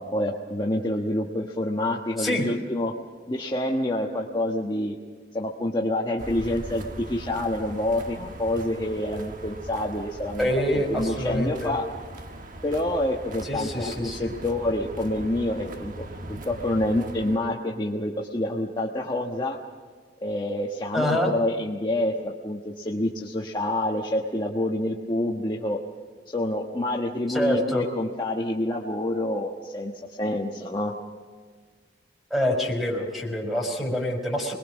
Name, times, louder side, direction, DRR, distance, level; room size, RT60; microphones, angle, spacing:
voice 1, 0.0-2.9 3.3-4.9 5.3-11.8 12.6-15.9 16.3-19.6 20.2-25.8 26.3-30.9, left 1 dB, 25° left, -1 dB, 1.3 m, -27 dB
sound 1, 6.2-17.4, right 1 dB, 45° right, 1.3 m, -40 dB
voice 2, 10.4-11.7 13.4-14.3 20.9-21.3 27.3-27.8 32.3-34.5, equal, ahead, 1 dB, 4.5 m, -26 dB
26.0 x 21.5 x 6.2 m, 1.5 s
head